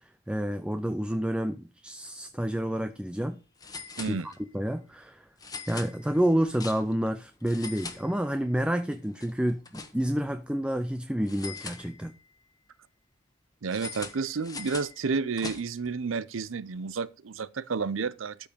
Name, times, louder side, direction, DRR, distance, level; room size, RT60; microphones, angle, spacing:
voice 1, 0.0-3.4 4.1-5.3 5.7-12.1, equal, 5° right, 0.5 m, -29 dB
sound 1, 2.6-2.7 2.9-3.0 3.6-4.6 5.4-7.1 7.4-8.6 8.9-10.3 11.3-12.4 13.7-15.9, left 4 dB, 20° left, 1.2 m, -42 dB
voice 2, 13.6-18.5, right 4 dB, 90° right, 0.6 m, -31 dB
13.0 x 5.4 x 5.1 m
head